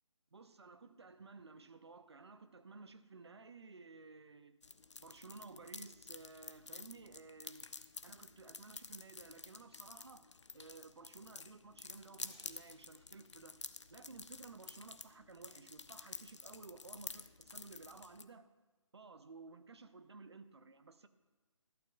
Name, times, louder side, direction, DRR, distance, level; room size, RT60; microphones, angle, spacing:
voice 1, 0.3-4.6 5.0-13.6 13.9-18.4 18.9-21.1, right 4 dB, 55° right, 11 dB, 0.7 m, -55 dB
sound 1, 4.6-18.2, left 4 dB, 65° left, 0.6 m, -51 dB
sound 2, 12.2-14.3, left 3 dB, 30° left, 4.3 m, -69 dB
18.0 x 12.0 x 2.3 m, 1.2 s
figure-of-eight pair, 145°, 16 cm